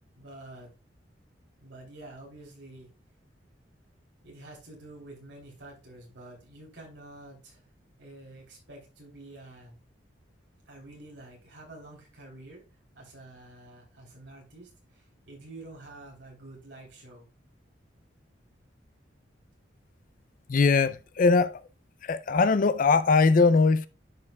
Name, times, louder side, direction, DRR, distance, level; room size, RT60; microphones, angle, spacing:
voice 1, 0.1-0.7 1.6-2.9 4.2-7.6 8.0-9.8 10.7-12.6 12.9-17.3, right 2 dB, 70° right, 3.4 m, -48 dB
voice 2, 20.5-21.6 22.0-23.9, left 4 dB, 45° left, 0.4 m, -21 dB
10.5 x 5.4 x 2.3 m
head